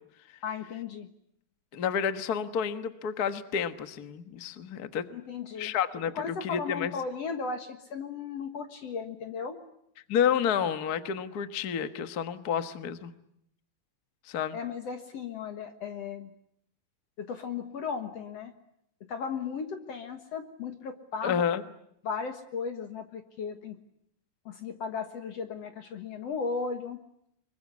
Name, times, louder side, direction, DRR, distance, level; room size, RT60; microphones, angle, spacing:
voice 1, 0.4-1.1 5.1-5.7 6.1-9.6 14.5-16.3 17.2-18.5 19.1-21.4 22.0-23.8 24.5-27.0, left 5 dB, 55° left, 7 dB, 2.2 m, -36 dB
voice 2, 1.7-5.0 5.6-6.9 10.1-13.1 14.3-14.6 21.2-21.6, left 8 dB, 90° left, 10 dB, 0.8 m, -30 dB
25.5 x 23.0 x 9.6 m, 0.74 s
omnidirectional pair, 4.0 m